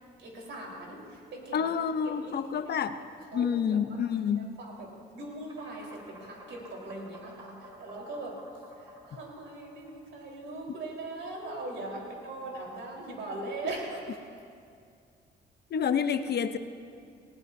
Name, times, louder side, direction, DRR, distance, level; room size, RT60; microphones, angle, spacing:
voice 1, 0.2-1.6 1.8-3.0 3.3-4.0 4.3-8.4 8.8-14.2, right 2 dB, 70° right, -2 dB, 4.2 m, -40 dB
voice 2, 1.5-3.0 3.3-4.5 15.7-16.6, left 7 dB, 55° left, 10 dB, 0.8 m, -28 dB
sound 1, 5.5-10.8, equal, 20° right, 2.5 m, -52 dB
20.0 x 18.0 x 2.7 m, 2.3 s
cardioid pair, 90°, 20 cm